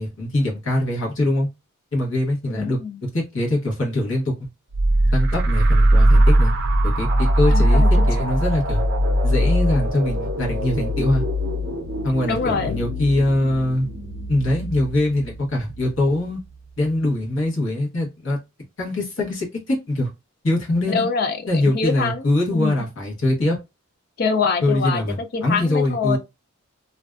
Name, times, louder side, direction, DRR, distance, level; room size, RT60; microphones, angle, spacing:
voice 1, 0.0-1.5 1.9-4.5 5.1-6.5 6.8-8.8 9.2-11.2 12.0-13.9 14.3-16.4 16.8-18.4 18.8-20.1 20.4-21.0 21.5-23.6 24.6-26.2, left 1 dB, 60° left, 0.9 m, -23 dB
voice 2, 2.4-3.0 7.5-8.3 12.3-12.8 20.9-22.8 24.2-25.0 25.3-26.2, left 5 dB, 45° left, 0.3 m, -25 dB
sound 1, 4.7-16.1, right 1 dB, 50° right, 0.5 m, -20 dB
2.5 x 2.2 x 2.3 m
head